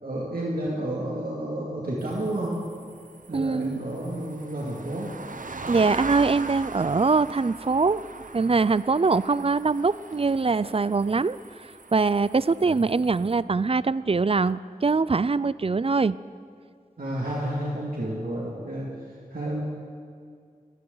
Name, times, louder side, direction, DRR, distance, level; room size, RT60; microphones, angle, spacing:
voice 1, 0.0-2.6 3.3-5.1 12.6-12.7 17.0-18.9 19.3-19.6, right 1 dB, 85° right, -5 dB, 2.3 m, -30 dB
sound 1, 2.0-13.3, right 3 dB, 65° right, 0.9 m, -40 dB
voice 2, 3.3-3.8 5.7-8.0 8.3-11.4 11.9-16.2, right 4 dB, 40° right, 18 dB, 0.4 m, -23 dB
21.0 x 17.0 x 3.9 m, 2.1 s
wide cardioid pair, 40°, 15 cm